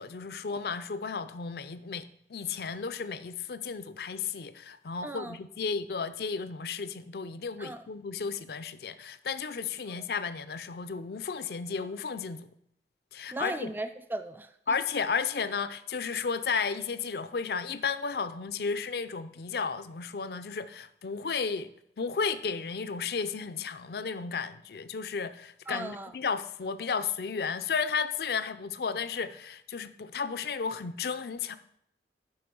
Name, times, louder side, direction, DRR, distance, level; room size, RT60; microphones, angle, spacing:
voice 1, 0.0-12.5 13.1-13.7 14.7-21.7 22.0-31.6, left 5 dB, 60° left, 13 dB, 0.5 m, -33 dB
voice 2, 5.0-5.4 7.6-7.8 9.9-10.0 13.3-14.8 25.7-26.1, right 2 dB, 10° right, 9 dB, 0.3 m, -37 dB
7.7 x 5.5 x 5.3 m, 0.74 s
head